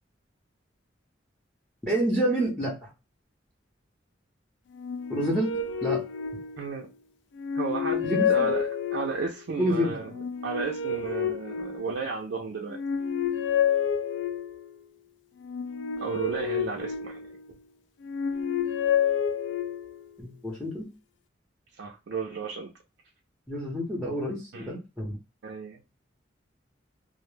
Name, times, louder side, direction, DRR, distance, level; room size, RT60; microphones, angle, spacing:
voice 1, 1.8-2.9 5.1-5.5 5.8-6.1 8.0-8.5 9.6-9.9 20.2-20.9 23.5-25.2, equal, 5° left, -3 dB, 0.6 m, -28 dB
sound 1, 4.7-6.9 7.4-9.4 10.1-12.2 12.7-14.7 15.4-17.5 18.0-20.0, left 7 dB, 70° left, 0.3 m, -29 dB
voice 2, 6.6-6.9 7.6-8.6 8.9-10.1 10.4-12.8 16.0-17.2 21.8-22.7 24.5-24.7 25.4-25.8, right 4 dB, 70° right, 0 dB, 0.4 m, -33 dB
2.0 x 2.0 x 3.0 m, 0.28 s
head